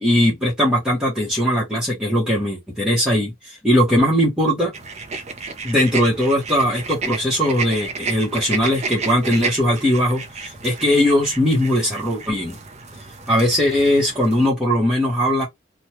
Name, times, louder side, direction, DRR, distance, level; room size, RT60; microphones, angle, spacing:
voice 1, 0.0-4.7 5.6-12.6 13.3-15.5, equal, 5° right, 1.0 m, -19 dB
sound 1, 4.7-14.5, right 4 dB, 35° right, 0.5 m, -32 dB
3.0 x 2.2 x 3.0 m
head